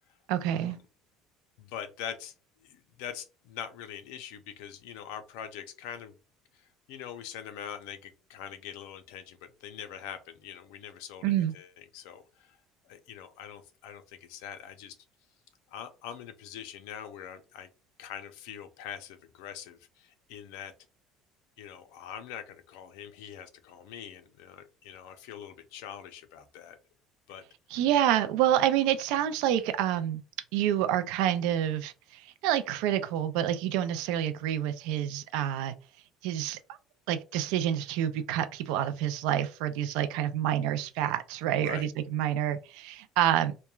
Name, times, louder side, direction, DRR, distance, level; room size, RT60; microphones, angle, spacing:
voice 1, 0.3-0.8 11.2-11.5 27.7-30.2 30.5-35.7 36.2-36.8 37.1-43.7, right 11 dB, 70° right, 0.3 m, -28 dB
voice 2, 1.6-2.3 2.6-6.2 6.6-11.7 11.9-12.6 12.8-15.0 15.7-17.7 18.0-20.7 21.6-26.8 27.3-27.4 41.5-41.8, left 9 dB, 85° left, 0.5 m, -43 dB
3.0 x 2.2 x 2.3 m
cardioid pair, 180°, 0 cm